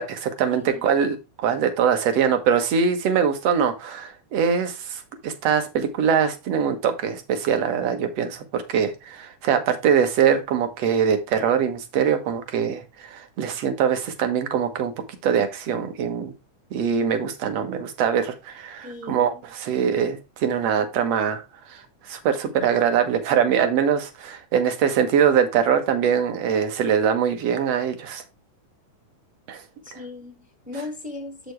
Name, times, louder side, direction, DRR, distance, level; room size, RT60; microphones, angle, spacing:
voice 1, 0.0-14.9 15.2-16.3 16.7-21.4 21.7-21.8 22.1-28.2 29.5-29.6 29.9-30.0, right 7 dB, 60° right, 2.2 m, -23 dB
voice 2, 0.5-0.8 18.8-19.4 29.8-31.5, left 2 dB, 5° right, 0.8 m, -37 dB
7.7 x 6.9 x 3.2 m
omnidirectional pair, 3.7 m